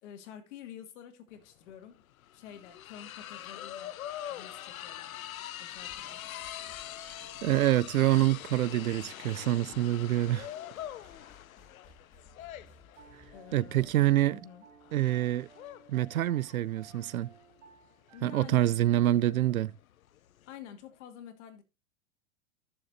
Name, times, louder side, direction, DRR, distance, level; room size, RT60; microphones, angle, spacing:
voice 1, 0.0-2.0 2.3-4.0 4.3-5.1 5.6-6.2 13.3-13.9 14.3-14.6 18.1-18.8 20.5-21.6, left 9 dB, 55° left, 2.4 m, -49 dB
sound 1, 1.3-1.4 1.7-20.5, left 12 dB, 80° left, 0.7 m, -44 dB
sound 2, 5.7-14.2, left 4 dB, 20° left, 5.6 m, -60 dB
voice 2, 7.4-10.5 13.5-14.4 14.9-15.5 15.9-17.3 18.2-19.7, right 14 dB, 80° right, 0.7 m, -26 dB
Piano, 13.0-19.8, right 6 dB, 60° right, 3.6 m, -58 dB
14.5 x 7.0 x 2.7 m
hypercardioid pair, 120°, 41 cm